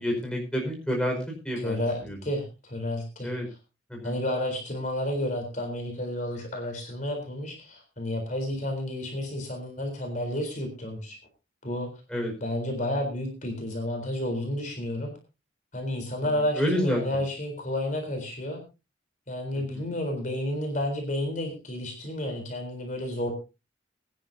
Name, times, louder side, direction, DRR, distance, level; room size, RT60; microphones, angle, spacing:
voice 1, 0.0-2.2 3.2-3.5 3.9-4.2 12.1-12.3 16.2-16.3 16.5-17.0 19.7-19.9, equal, 5° left, 0 dB, 5.1 m, -29 dB
voice 2, 1.6-3.3 4.0-11.2 11.6-11.9 12.4-15.1 15.7-18.6 19.3-23.3, left 1 dB, 40° left, 3 dB, 3.8 m, -31 dB
22.5 x 10.5 x 2.8 m, 0.29 s
head